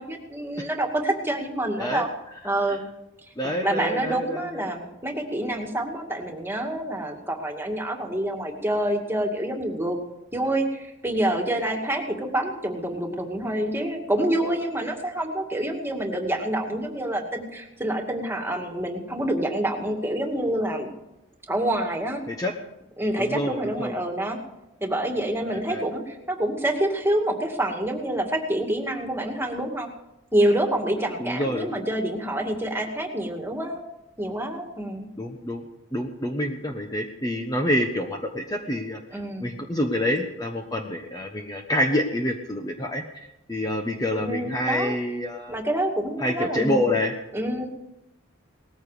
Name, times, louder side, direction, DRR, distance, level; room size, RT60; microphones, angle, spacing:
voice 1, 0.0-2.1 2.4-2.8 3.6-10.0 10.3-20.9 21.5-22.2 23.0-24.4 24.8-29.9 30.3-33.8 34.2-35.1 39.1-39.6 44.2-45.0 45.5-47.0 47.3-47.7, right 1 dB, 10° right, 2 dB, 2.2 m, -27 dB
voice 2, 3.4-4.7 22.3-22.5 23.2-23.9 25.5-25.8 31.2-31.7 35.2-35.6 35.9-39.0 39.4-45.6 46.2-47.1, left 1 dB, 20° left, 3 dB, 1.2 m, -27 dB
19.5 x 14.5 x 5.0 m, 0.91 s
head